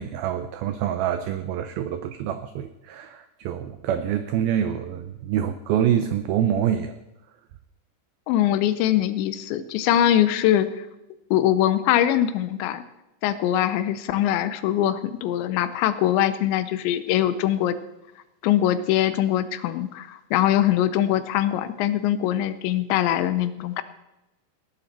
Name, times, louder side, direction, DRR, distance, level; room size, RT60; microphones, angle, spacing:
voice 1, 0.0-6.9, right 9 dB, 85° right, 9 dB, 2.1 m, -26 dB
voice 2, 8.3-10.9 11.3-12.8 13.2-17.8 18.4-23.8, left 12 dB, 80° left, 13 dB, 3.1 m, -22 dB
19.0 x 11.0 x 4.4 m, 0.96 s
omnidirectional pair, 5.2 m